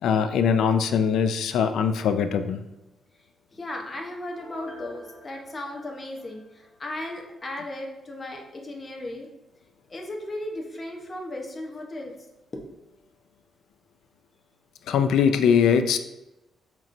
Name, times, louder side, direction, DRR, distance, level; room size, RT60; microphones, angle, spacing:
voice 1, 0.0-2.6 14.9-16.0, left 7 dB, 85° left, 9 dB, 0.3 m, -21 dB
voice 2, 3.5-9.3 9.9-12.1, left 1 dB, 25° left, 1 dB, 0.8 m, -36 dB
Piano, 4.3-7.0 7.4-7.5, left 1 dB, 60° left, 1.0 m, -47 dB
5.2 x 3.0 x 2.5 m, 0.96 s
cardioid pair, 115°, 0 cm